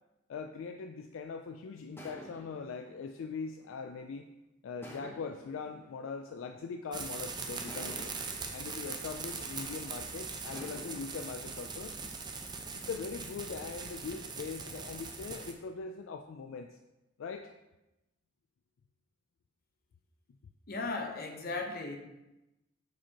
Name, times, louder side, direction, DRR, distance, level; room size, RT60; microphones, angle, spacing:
voice 1, 0.3-4.3 4.6-8.1 8.5-12.0 12.7-16.8 17.2-17.5, left 5 dB, 75° left, 6 dB, 0.3 m, -41 dB
sound 1, 2.0-4.2 4.8-7.0 7.7-9.9 10.5-11.6, equal, 10° left, 0.9 m, -52 dB
sound 2, 6.9-15.5, right 4 dB, 20° right, 0.5 m, -41 dB
voice 2, 20.7-22.0, left 3 dB, 50° left, 3 dB, 0.8 m, -36 dB
7.5 x 4.4 x 2.8 m, 0.98 s
head